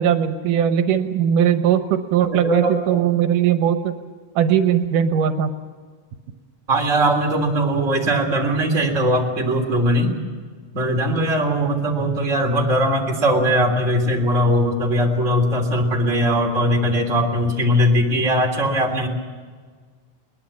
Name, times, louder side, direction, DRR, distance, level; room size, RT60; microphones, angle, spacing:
voice 1, 0.0-3.9 4.4-5.5, right 9 dB, 85° right, 8 dB, 2.6 m, -19 dB
voice 2, 2.3-3.0 6.7-10.1 10.7-19.1, equal, 25° right, 0 dB, 3.4 m, -20 dB
21.5 x 20.5 x 7.4 m, 1.6 s
omnidirectional pair, 3.7 m